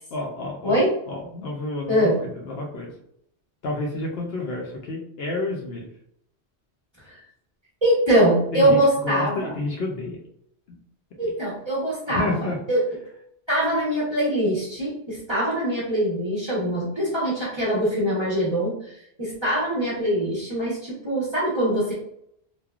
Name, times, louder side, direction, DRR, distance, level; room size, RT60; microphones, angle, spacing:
voice 1, 0.1-0.8 1.1-2.9 3.6-5.9 8.5-10.2 10.7-10.8 11.2-11.3 12.1-12.6, left 2 dB, 70° left, 0 dB, 0.8 m, -30 dB
voice 2, 1.9-2.2 7.0-7.2 7.8-9.5 11.2-12.3 12.7-12.8 13.5-21.9, right 1 dB, 25° right, -9 dB, 0.9 m, -23 dB
3.1 x 2.1 x 2.3 m, 0.74 s
omnidirectional pair, 1.1 m